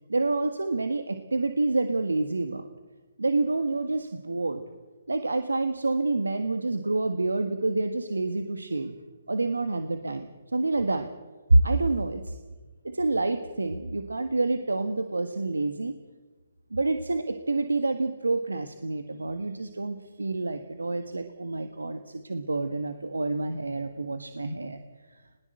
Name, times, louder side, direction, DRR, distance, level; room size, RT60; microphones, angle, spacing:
voice 1, 0.1-2.7 3.2-4.6 5.1-8.9 9.3-11.1 11.5-12.4 12.8-15.9 16.7-24.8 25.1-25.2, right 2 dB, 90° right, 8 dB, 1.6 m, -27 dB
20.5 x 18.5 x 7.8 m, 1.3 s
figure-of-eight pair, 140°, 0 cm